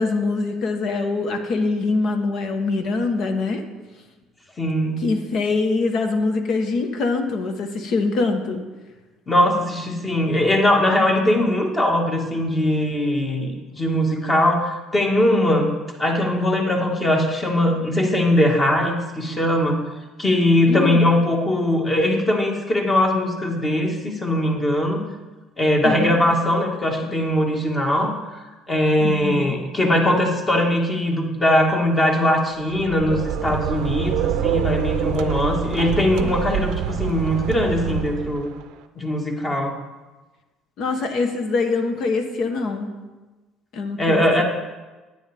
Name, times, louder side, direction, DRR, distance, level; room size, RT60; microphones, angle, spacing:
voice 1, 0.0-3.6 5.0-8.6 20.6-21.0 25.8-26.1 29.0-29.6 40.8-42.9 43.7-44.4, left 3 dB, 60° left, 6 dB, 1.2 m, -23 dB
voice 2, 4.6-5.0 9.3-15.7 16.0-19.8 20.2-25.1 25.6-28.4 28.7-38.5 39.0-39.8 44.0-44.4, left 1 dB, 25° left, 1 dB, 1.7 m, -20 dB
sound 1, 32.6-38.6, right 10 dB, 75° right, 0.5 m, -26 dB
9.9 x 9.5 x 3.5 m, 1.2 s
supercardioid pair, 95°, 0 cm